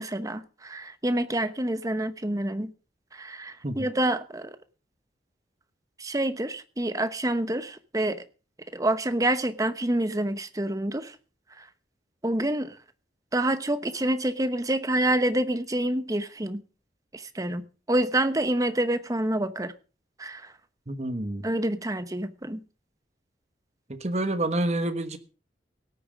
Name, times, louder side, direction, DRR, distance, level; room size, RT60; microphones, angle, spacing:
voice 1, 0.0-2.7 3.1-4.6 6.0-8.2 8.7-11.1 11.6-11.7 12.2-12.8 13.3-16.6 17.1-19.7 20.2-20.5 21.4-22.6, right 1 dB, 20° right, 1.0 m, -27 dB
voice 2, 20.9-21.4 23.9-25.2, right 1 dB, 40° right, 1.2 m, -28 dB
17.5 x 9.1 x 5.1 m
head